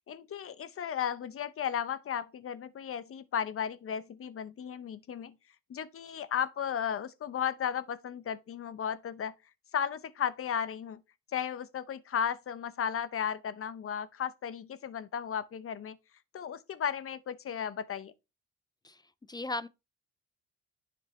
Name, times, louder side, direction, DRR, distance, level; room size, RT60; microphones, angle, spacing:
voice 1, 0.1-5.3 5.7-9.3 9.7-11.0 11.3-16.0 16.3-18.1, left 8 dB, 45° left, 0.8 m, -35 dB
voice 2, 19.3-19.7, left 2 dB, 15° left, 0.4 m, -36 dB
10.0 x 5.4 x 3.2 m
cardioid pair, 90°, 30 cm